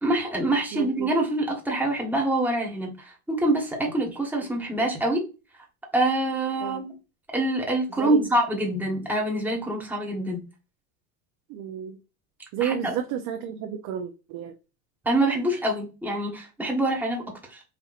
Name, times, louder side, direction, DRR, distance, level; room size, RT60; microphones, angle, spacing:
voice 1, 0.0-5.2 5.9-6.9 7.3-10.4 12.6-12.9 15.0-17.6, right 1 dB, 5° right, 1.3 m, -25 dB
voice 2, 0.7-1.1 6.6-6.8 8.0-8.3 11.5-12.0 12.5-14.5, right 9 dB, 55° right, 0.6 m, -31 dB
4.3 x 2.7 x 2.4 m
supercardioid pair, 110°, 43 cm